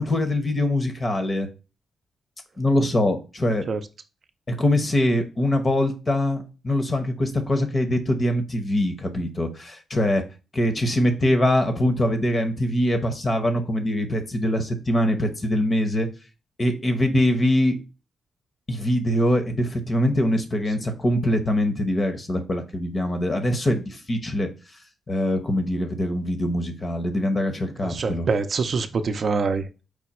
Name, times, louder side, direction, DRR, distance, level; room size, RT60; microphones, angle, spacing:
voice 1, 0.0-1.5 2.6-3.7 4.5-10.2 10.5-16.1 16.6-17.8 18.7-24.5 25.1-28.3, left 1 dB, 30° left, 0.9 m, -23 dB
voice 2, 27.8-29.9, right 4 dB, 50° right, 0.4 m, -25 dB
4.8 x 2.2 x 4.2 m
cardioid pair, 100°, 0 cm